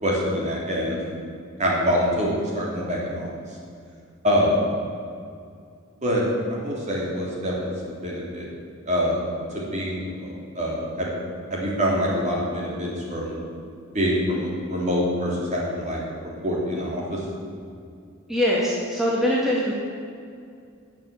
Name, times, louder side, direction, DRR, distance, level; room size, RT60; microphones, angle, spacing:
voice 1, 0.0-1.0 1.6-3.3 4.2-4.6 6.0-6.2 6.5-7.7 8.0-8.5 8.9-9.2 9.5-11.1 11.5-13.4 13.9-16.0 16.4-17.2, equal, 35° right, -4 dB, 3.4 m, -25 dB
voice 2, 18.3-19.7, equal, ahead, -6 dB, 1.9 m, -22 dB
13.5 x 7.1 x 9.0 m, 2.3 s
head